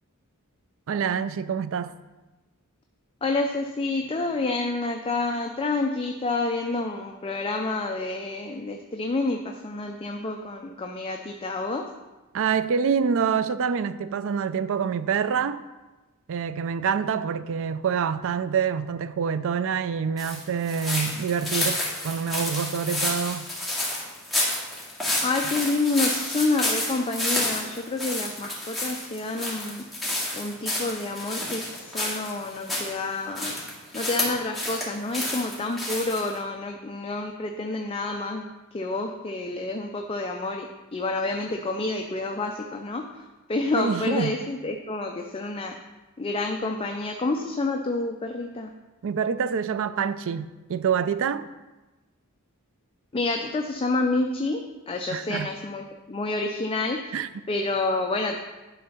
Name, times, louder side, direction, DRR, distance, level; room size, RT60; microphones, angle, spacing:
voice 1, 0.9-1.9 12.3-15.6 16.3-23.5 43.8-44.4 49.0-51.4 55.1-55.5 57.1-57.5, right 6 dB, 65° right, 0.4 m, -26 dB
voice 2, 3.2-11.9 25.2-29.8 30.3-33.6 33.9-45.7 46.2-48.7 53.1-57.2 57.5-58.4, left 2 dB, 25° left, 0.5 m, -29 dB
sound 1, 20.2-32.9 33.3-34.9 35.1-36.3, left 1 dB, ahead, 2.2 m, -30 dB
11.0 x 4.0 x 5.6 m
head